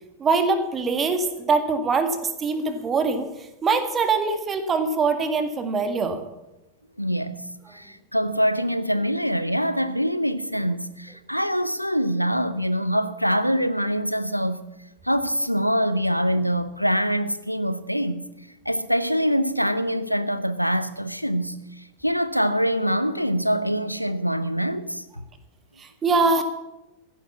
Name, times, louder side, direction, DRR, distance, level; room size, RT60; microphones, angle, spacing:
voice 1, 0.2-6.2 25.8-26.4, right 4 dB, 20° right, 1.9 m, -23 dB
voice 2, 7.0-14.6 15.0-18.2 18.6-25.0, equal, 90° left, 0.8 m, -24 dB
15.0 x 10.5 x 7.3 m
figure-of-eight pair, 90°, 0 cm